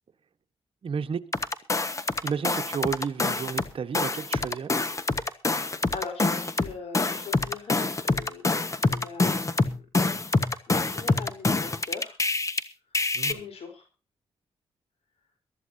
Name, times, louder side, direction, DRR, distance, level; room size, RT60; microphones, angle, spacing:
voice 1, 0.8-1.2 2.2-4.8 13.1-13.3, right 6 dB, 60° right, 1.3 m, -32 dB
sound 1, 1.3-3.7 3.9-12.6 12.9-13.3, left 3 dB, 30° left, 1.3 m, -26 dB
voice 2, 5.9-8.4 8.8-9.9 10.7-12.2 13.2-13.8, left 5 dB, 85° left, 4.1 m, -40 dB
22.5 x 13.5 x 2.8 m
cardioid pair, 90°, 10 cm